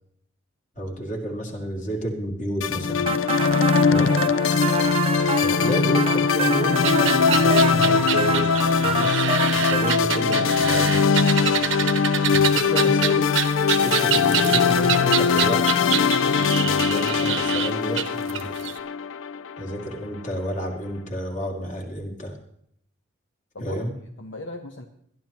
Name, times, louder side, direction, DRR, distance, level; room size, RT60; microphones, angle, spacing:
voice 1, 0.8-3.1 3.9-4.3 5.4-11.1 12.3-13.4 13.7-15.9 16.4-18.6 19.6-22.4 23.6-23.9, equal, 40° left, 1 dB, 2.4 m, -31 dB
sound 1, 2.6-20.0, left 5 dB, 85° left, 0.5 m, -21 dB
sound 2, 3.1-10.0, right 6 dB, 30° right, 0.5 m, -29 dB
sound 3, 6.8-18.7, right 9 dB, 80° right, 1.0 m, -26 dB
voice 2, 23.5-24.9, left 2 dB, 65° left, 5 dB, 0.9 m, -39 dB
21.0 x 12.0 x 3.0 m, 0.70 s
head